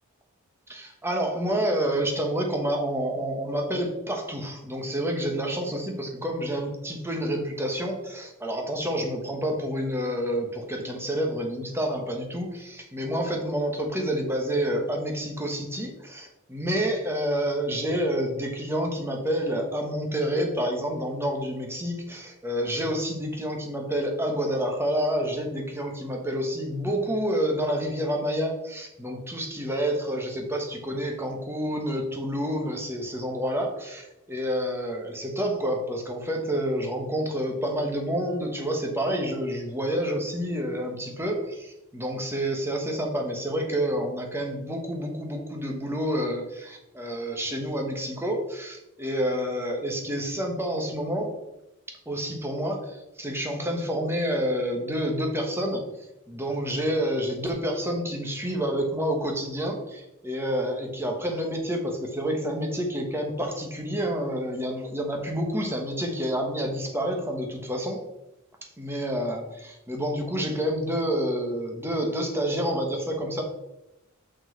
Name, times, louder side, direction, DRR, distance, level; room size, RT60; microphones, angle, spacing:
voice 1, 0.7-51.3 52.0-55.8 56.3-68.1 68.8-73.4, equal, 10° right, 2 dB, 1.2 m, -28 dB
6.2 x 5.5 x 4.6 m, 0.90 s
head